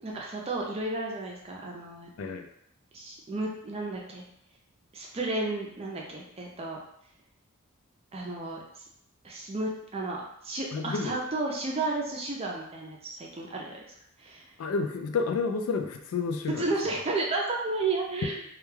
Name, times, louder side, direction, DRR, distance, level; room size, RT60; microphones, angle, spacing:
voice 1, 0.0-2.1 2.9-4.2 4.9-6.8 8.1-8.6 9.2-13.8 14.2-14.5 16.6-18.4, right 2 dB, 25° right, -1 dB, 0.4 m, -32 dB
voice 2, 2.2-2.5 10.7-11.2 14.6-16.6, left 4 dB, 75° left, 6 dB, 0.3 m, -30 dB
2.3 x 2.2 x 3.1 m, 0.75 s
head